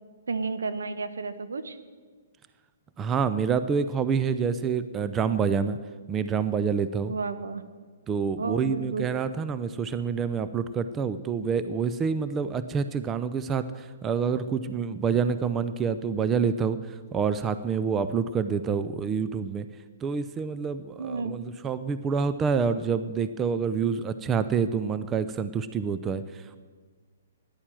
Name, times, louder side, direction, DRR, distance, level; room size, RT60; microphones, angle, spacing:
voice 1, 0.3-1.8 7.1-7.6 8.4-9.1 21.0-21.4, right 4 dB, 75° right, 10 dB, 1.1 m, -32 dB
voice 2, 3.0-5.8 6.1-7.1 8.1-19.7 20.0-26.6, right 6 dB, 20° right, 12 dB, 0.5 m, -27 dB
14.0 x 10.5 x 7.5 m, 1.5 s
figure-of-eight pair, 125°, 0 cm